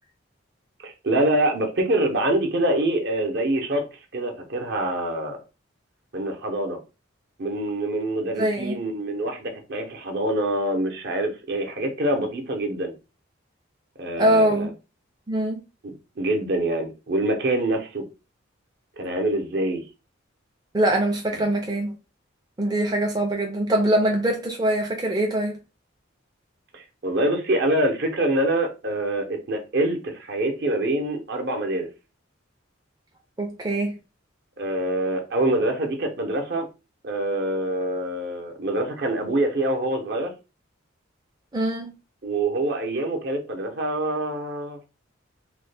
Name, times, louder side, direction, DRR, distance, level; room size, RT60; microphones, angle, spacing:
voice 1, 0.8-3.8 4.1-5.4 6.1-6.8 7.4-12.9 14.0-14.7 15.8-18.0 19.0-19.8 21.3-21.4 26.7-31.9 34.6-36.7 37.0-40.3 42.2-44.8, right 1 dB, 55° right, 0.7 m, -25 dB
voice 2, 8.4-8.8 14.2-14.7 15.3-15.6 20.7-22.0 22.6-25.6 33.4-34.0 41.5-42.0, right 1 dB, 20° right, 0.4 m, -23 dB
3.1 x 2.1 x 3.3 m
head